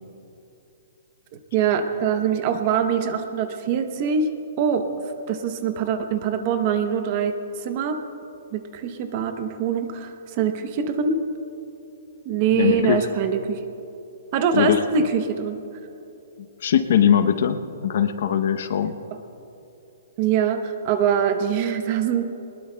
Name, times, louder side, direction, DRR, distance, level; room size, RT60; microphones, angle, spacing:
voice 1, 1.5-4.3 4.6-4.9 5.3-8.0 8.5-11.2 12.2-13.6 14.3-15.6 20.2-22.2, right 7 dB, 25° right, 8 dB, 0.7 m, -23 dB
voice 2, 12.5-13.0 14.5-14.8 16.4-19.0, left 9 dB, 45° left, 9 dB, 0.7 m, -21 dB
22.5 x 20.5 x 2.2 m, 2.8 s
hypercardioid pair, 180°, 0 cm